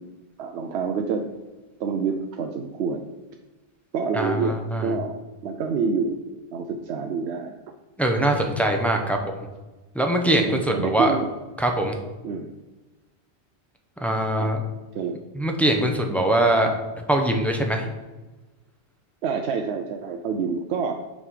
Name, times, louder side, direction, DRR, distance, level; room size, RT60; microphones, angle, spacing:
voice 1, 0.4-1.3 1.8-3.1 3.9-6.2 6.5-7.5 10.4-11.3 12.2-12.5 14.9-15.2 19.2-21.0, right 5 dB, 70° right, 5 dB, 0.8 m, -27 dB
voice 2, 4.1-4.9 8.0-9.4 9.9-11.2 11.6-11.9 14.0-14.6 15.3-17.9, right 1 dB, ahead, 2 dB, 0.7 m, -22 dB
6.2 x 5.3 x 4.8 m, 1.1 s
omnidirectional pair, 1.1 m